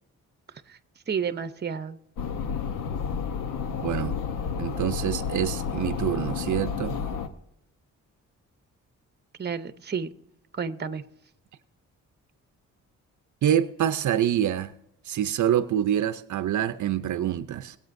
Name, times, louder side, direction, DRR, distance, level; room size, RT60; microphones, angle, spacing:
voice 1, 1.1-2.0 9.4-10.1 10.5-11.0, right 6 dB, 35° right, 0.8 m, -31 dB
sound 1, 2.2-7.3, left 6 dB, 85° left, 1.0 m, -31 dB
voice 2, 3.8-4.2 4.6-7.0 13.4-14.7 15.0-17.8, right 10 dB, 65° right, 0.6 m, -26 dB
20.5 x 8.3 x 2.6 m
cardioid pair, 75°, 31 cm